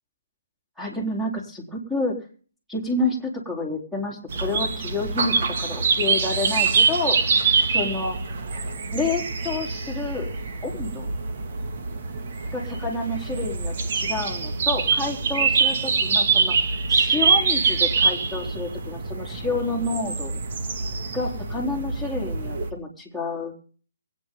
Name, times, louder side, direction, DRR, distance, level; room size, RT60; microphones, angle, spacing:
voice 1, 0.8-2.2 2.7-7.2 7.7-8.2 8.9-10.3 10.6-11.1 12.5-16.5 16.9-20.4 21.1-23.5, left 2 dB, ahead, -1 dB, 3.8 m, -29 dB
sound 1, 4.3-22.7, right 5 dB, 50° right, 2.0 m, -24 dB
23.0 x 9.3 x 3.8 m, 0.42 s
hypercardioid pair, 150°, 0 cm